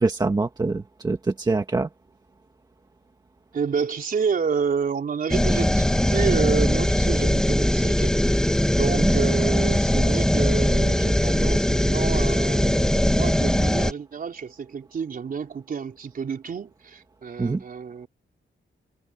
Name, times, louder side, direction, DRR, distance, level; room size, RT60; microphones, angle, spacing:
voice 1, 0.0-1.9 9.0-9.1 17.4-17.6, right 3 dB, 20° right, 1.6 m, -24 dB
voice 2, 3.5-8.4 8.7-18.1, right 6 dB, 45° right, 4.0 m, -29 dB
sound 1, 5.3-13.9, left 1 dB, 5° left, 1.5 m, -21 dB
wide cardioid pair, 180°, 20 cm